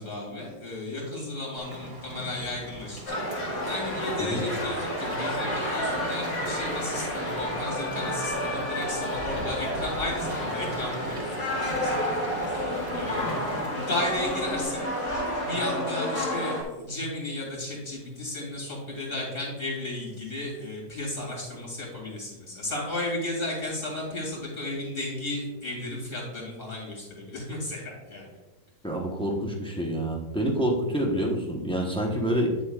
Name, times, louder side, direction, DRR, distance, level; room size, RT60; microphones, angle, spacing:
voice 1, 0.0-15.1 15.4-28.4, left 1 dB, 30° left, -3 dB, 2.8 m, -34 dB
Rain, 1.6-14.6, right 2 dB, 15° right, 1.1 m, -40 dB
sound 1, 3.1-16.6, left 1 dB, 70° left, 2.4 m, -30 dB
voice 2, 28.8-32.6, right 1 dB, 5° left, -1 dB, 0.8 m, -27 dB
9.5 x 7.1 x 2.4 m, 1.1 s
omnidirectional pair, 1.8 m